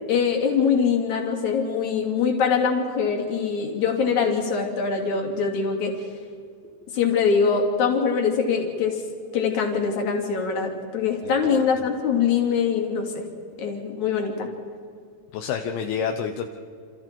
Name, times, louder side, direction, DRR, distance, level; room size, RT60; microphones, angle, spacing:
voice 1, 0.1-5.9 6.9-9.0 9.3-13.1 13.6-14.5, left 6 dB, 50° left, 2 dB, 3.9 m, -23 dB
voice 2, 11.2-11.7 15.3-16.5, left 7 dB, 75° left, 5 dB, 2.8 m, -29 dB
29.0 x 27.5 x 4.5 m, 2.3 s
omnidirectional pair, 4.7 m